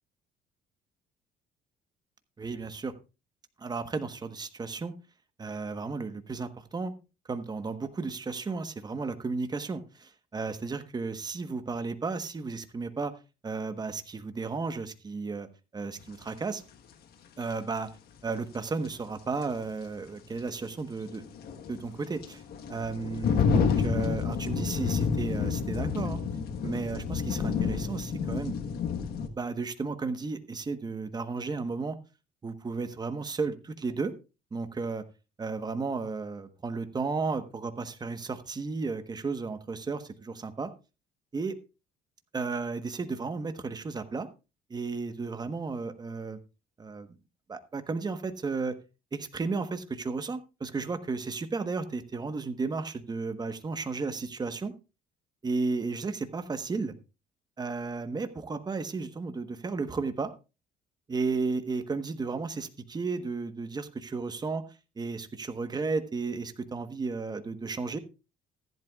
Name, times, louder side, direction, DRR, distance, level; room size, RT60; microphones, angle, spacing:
voice 1, 2.4-2.9 3.6-4.9 5.4-7.0 7.3-13.1 13.4-15.5 15.7-16.6 17.4-17.9 18.2-21.2 21.7-22.4 22.7-26.2 26.6-28.6 29.3-32.0 32.4-34.1 34.5-35.0 35.4-40.7 41.3-41.6 42.3-44.3 44.7-46.4 46.8-47.1 47.5-48.7 49.1-54.7 55.4-56.9 57.6-60.3 61.1-64.6 65.0-68.0, right 4 dB, 25° right, 10 dB, 1.2 m, -33 dB
sound 1, 16.3-16.4 18.9-19.0 19.4-19.5 21.1-29.3, left 6 dB, 65° left, 1.4 m, -29 dB
15.0 x 11.0 x 2.4 m, 0.30 s
cardioid pair, 110°, 17 cm